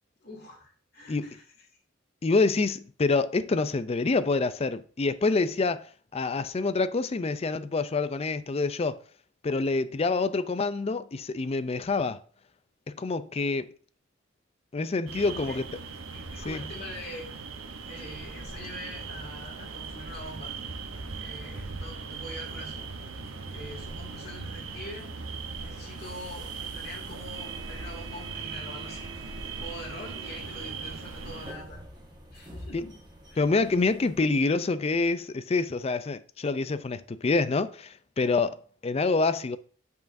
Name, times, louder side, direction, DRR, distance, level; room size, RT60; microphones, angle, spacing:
voice 1, 0.2-1.4 15.2-15.6 16.1-17.3 17.9-20.5 21.1-22.9 23.5-25.2 25.6-31.8 32.3-33.0 33.3-33.5, left 1 dB, 50° left, 2.3 m, -44 dB
voice 2, 2.2-9.0 9.4-12.2 12.9-13.7 14.7-15.6 16.5-16.6 32.7-32.8 33.4-39.6, left 3 dB, 30° left, 0.4 m, -27 dB
sound 1, 15.1-31.5, right 4 dB, 85° right, 0.9 m, -39 dB
sound 2, 22.2-34.2, right 2 dB, 20° right, 1.4 m, -48 dB
9.0 x 5.5 x 2.6 m
head